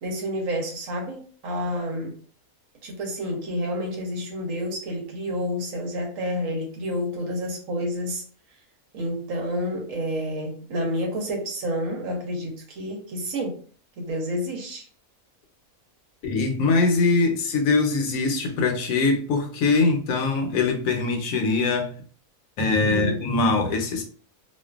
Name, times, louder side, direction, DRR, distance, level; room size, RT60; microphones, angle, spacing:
voice 1, 0.0-2.2 2.8-8.2 8.9-13.6 14.0-14.9 22.8-23.2, equal, 65° right, 1.0 m, -29 dB
voice 2, 16.2-21.9 22.6-24.0, left 3 dB, 70° left, 1.0 m, -22 dB
2.5 x 2.4 x 2.3 m
omnidirectional pair, 1.6 m